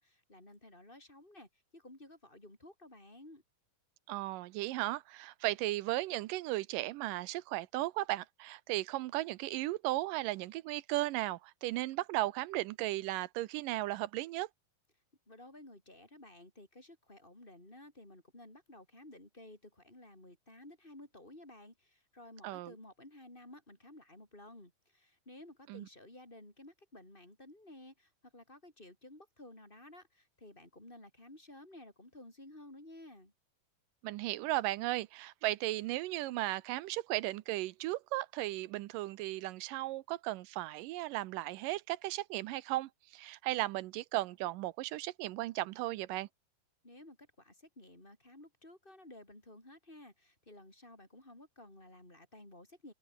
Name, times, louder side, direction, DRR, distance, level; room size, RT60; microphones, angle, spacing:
voice 1, 0.0-3.4 15.3-33.3 46.8-52.9, left 1 dB, 15° left, 5.5 m, -54 dB
voice 2, 4.1-14.5 22.4-22.7 25.7-25.9 34.0-46.3, right 17 dB, 80° right, 2.3 m, -36 dB
omnidirectional pair, 4.1 m